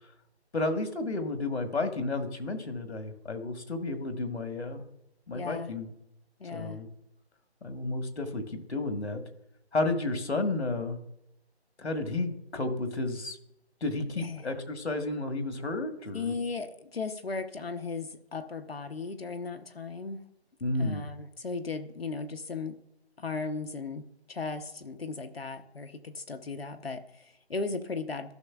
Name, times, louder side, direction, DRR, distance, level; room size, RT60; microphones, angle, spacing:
voice 1, 0.5-4.8 5.3-5.9 6.5-6.9 7.6-9.2 9.7-11.0 11.8-13.4 13.8-16.4 20.6-21.1, left 2 dB, 75° left, 7 dB, 1.6 m, -32 dB
voice 2, 5.3-5.7 6.4-6.8 14.2-14.5 16.1-20.2 20.8-22.8 23.2-28.3, left 4 dB, 60° left, 7 dB, 0.8 m, -36 dB
14.5 x 6.4 x 2.4 m, 0.83 s
figure-of-eight pair, 180°, 33 cm